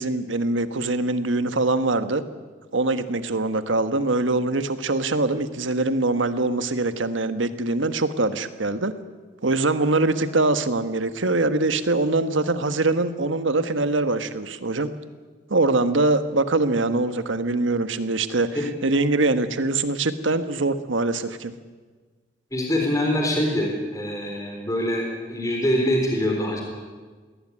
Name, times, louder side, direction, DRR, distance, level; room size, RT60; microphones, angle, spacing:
voice 1, 0.0-2.2 2.7-8.9 9.4-14.9 15.5-21.5, right 2 dB, 85° right, 11 dB, 1.4 m, -23 dB
voice 2, 22.5-26.6, left 1 dB, 15° left, 1 dB, 4.0 m, -24 dB
20.5 x 18.5 x 9.8 m, 1.4 s
head